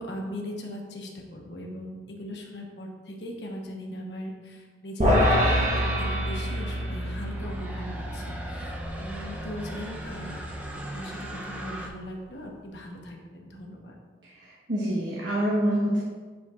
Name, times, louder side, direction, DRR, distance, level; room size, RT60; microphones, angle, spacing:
voice 1, 0.0-10.4 10.7-14.0, equal, 70° left, 0 dB, 1.1 m, -39 dB
sound 1, 5.0-11.4, equal, 40° right, 1.2 m, -27 dB
sound 2, 6.5-11.9, right 1 dB, 10° right, 0.7 m, -39 dB
voice 2, 14.2-16.0, equal, 85° right, -6 dB, 1.2 m, -26 dB
9.8 x 4.9 x 2.5 m, 1.4 s
head